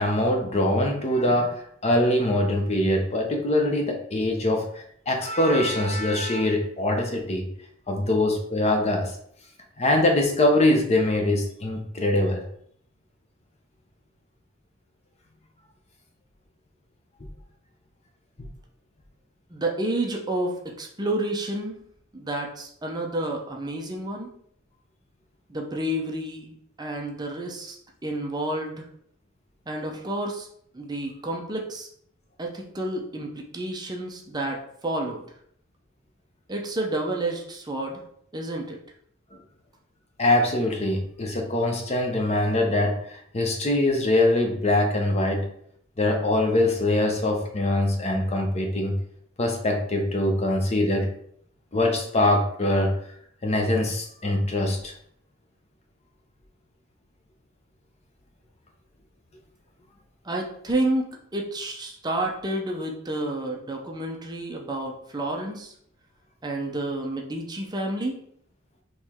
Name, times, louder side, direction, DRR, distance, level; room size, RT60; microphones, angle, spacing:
voice 1, 0.0-7.5 7.9-9.1 9.8-12.4 40.2-45.5 46.0-48.9 49.4-51.1 51.7-52.9 53.4-54.9, left 1 dB, 30° left, 3 dB, 0.7 m, -23 dB
voice 2, 19.5-21.8 22.1-24.3 25.5-27.8 28.0-28.9 29.7-30.5 30.7-31.9 32.4-35.2 36.5-38.0 38.3-38.8 60.2-65.7 66.4-68.2, right 1 dB, 20° right, 0 dB, 0.6 m, -30 dB
4.6 x 3.1 x 3.6 m, 0.67 s
head